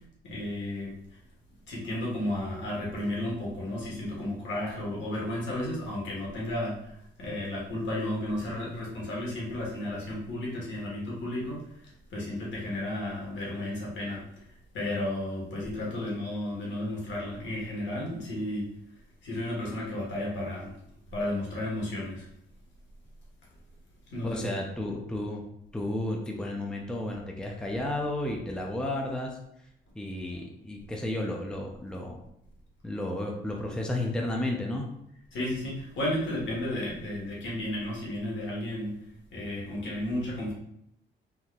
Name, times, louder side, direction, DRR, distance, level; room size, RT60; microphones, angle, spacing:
voice 1, 0.2-1.0 1.7-18.7 19.2-20.7 21.1-22.2 24.1-24.4 35.3-39.0 39.3-40.5, left 1 dB, 70° left, -4 dB, 1.3 m, -33 dB
voice 2, 24.2-25.4 25.7-29.4 30.0-32.2 32.8-34.9, left 1 dB, 5° left, 0 dB, 0.5 m, -32 dB
3.7 x 2.7 x 2.3 m, 0.77 s
cardioid pair, 90°, 20 cm